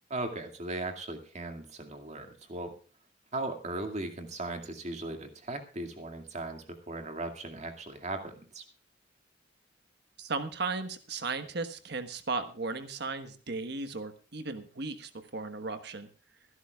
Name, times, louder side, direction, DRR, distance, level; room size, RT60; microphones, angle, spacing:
voice 1, 0.1-2.7 3.3-8.6, right 2 dB, 40° right, 6 dB, 2.2 m, -38 dB
voice 2, 10.2-16.1, right 3 dB, 65° right, 10 dB, 1.3 m, -36 dB
24.5 x 11.0 x 2.4 m, 0.37 s
head